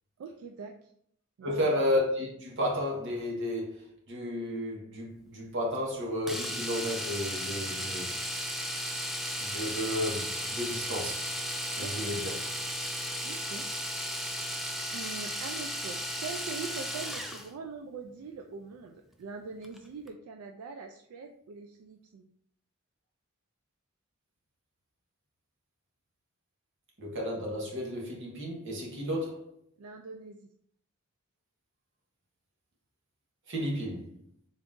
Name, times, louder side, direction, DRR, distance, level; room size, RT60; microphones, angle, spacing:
voice 1, 0.2-0.9 1.4-1.7 11.8-12.2 13.2-13.7 14.9-18.9 19.2-22.3 29.8-30.5, right 4 dB, 85° right, 0.3 m, -42 dB
voice 2, 1.4-8.1 9.4-11.2 11.8-12.3 27.0-29.5 33.5-34.1, left 1 dB, 60° right, 1.1 m, -32 dB
Domestic sounds home sounds, 6.3-17.5 19.6-19.8 20.1-20.2, equal, ahead, 0.3 m, -35 dB
3.9 x 2.5 x 3.6 m
head